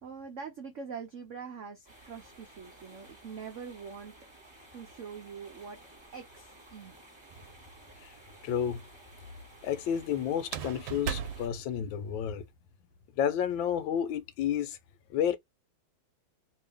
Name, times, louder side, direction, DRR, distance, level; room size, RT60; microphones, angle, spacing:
voice 1, 0.0-4.1 4.7-5.8 6.1-7.0, right 6 dB, 70° right, 0.7 m, -43 dB
sound 1, 1.9-11.5, right 1 dB, 15° right, 1.4 m, -55 dB
sound 2, 7.3-8.0 10.4-12.4, right 7 dB, 85° right, 1.4 m, -38 dB
voice 2, 8.4-8.8 9.6-12.5 13.2-14.8 15.1-15.4, left 9 dB, 80° left, 1.3 m, -31 dB
3.1 x 2.8 x 3.4 m
omnidirectional pair, 2.2 m